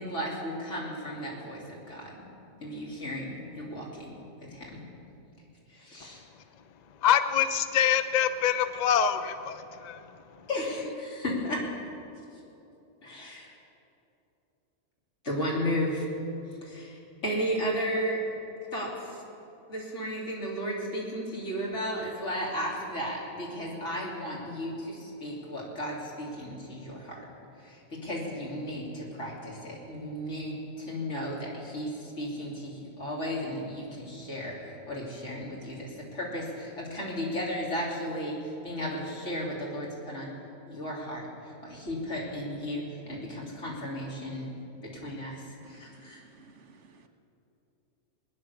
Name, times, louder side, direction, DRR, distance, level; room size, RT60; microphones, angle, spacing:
voice 1, 0.0-2.2 2.6-4.2 4.5-4.8 5.7-6.2 10.5-11.6 13.0-13.5 15.2-16.1 16.6-18.2 18.7-19.2 19.7-27.2 27.6-40.3 40.7-44.5 45.0-46.2, equal, 80° left, -4 dB, 3.6 m, -34 dB
voice 2, 6.0-10.5, left 9 dB, 45° left, 11 dB, 0.6 m, -27 dB
voice 3, 45.6-47.1, right 4 dB, 75° right, 6 dB, 1.5 m, -56 dB
21.5 x 9.7 x 7.0 m, 2.9 s
omnidirectional pair, 1.2 m